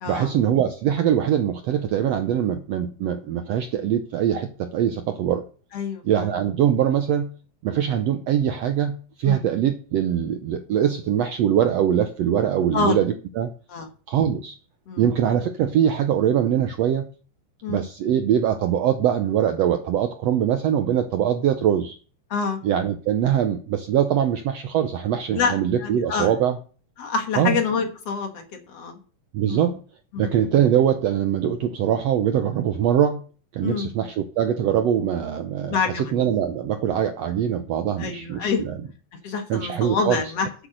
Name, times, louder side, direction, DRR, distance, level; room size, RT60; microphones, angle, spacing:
voice 1, 0.1-5.4 6.0-7.3 7.6-13.5 14.1-14.6 15.0-17.0 17.7-22.0 22.6-26.6 27.3-27.6 29.3-29.8 30.2-33.2 33.5-38.8 39.5-40.2, right 9 dB, 75° right, 7 dB, 1.6 m, -22 dB
voice 2, 5.7-6.0 9.3-9.4 12.7-13.0 13.7-13.9 14.9-15.0 17.6-17.8 22.3-22.6 25.3-26.3 27.0-29.0 29.4-29.7 30.1-30.3 33.6-33.9 35.7-36.0 38.0-38.6 39.2-40.5, left 5 dB, 55° left, 5 dB, 2.1 m, -26 dB
9.4 x 8.0 x 6.6 m, 0.39 s
omnidirectional pair, 3.8 m